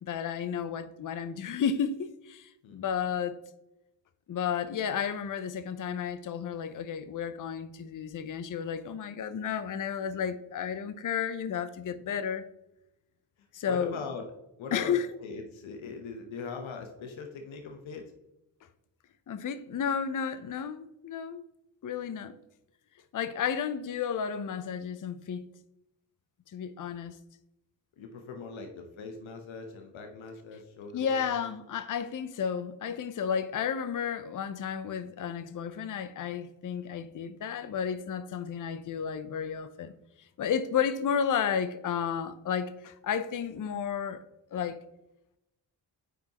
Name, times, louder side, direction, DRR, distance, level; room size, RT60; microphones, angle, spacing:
voice 1, 0.0-3.4 4.3-12.4 13.5-14.0 14.7-15.1 19.3-21.4 21.8-22.3 23.1-25.5 26.5-27.2 30.9-39.9 40.4-44.2 44.5-44.8, left 7 dB, 45° left, 0.6 m, -32 dB
voice 2, 13.7-14.3 14.6-14.9 15.2-18.0 28.0-31.2, left 4 dB, 75° left, 1.0 m, -41 dB
9.1 x 4.6 x 2.9 m
supercardioid pair, 45°, 47 cm